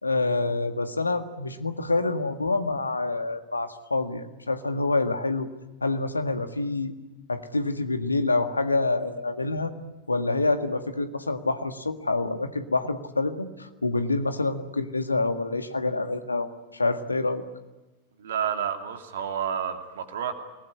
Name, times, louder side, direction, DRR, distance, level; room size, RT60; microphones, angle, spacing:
voice 1, 0.0-5.5 5.8-6.9 7.3-9.7 10.1-17.4, left 3 dB, 80° left, 8 dB, 1.8 m, -27 dB
voice 2, 18.2-20.3, right 8 dB, 60° right, 6 dB, 2.8 m, -30 dB
27.5 x 20.0 x 10.0 m, 1.1 s
figure-of-eight pair, 90°, 0 cm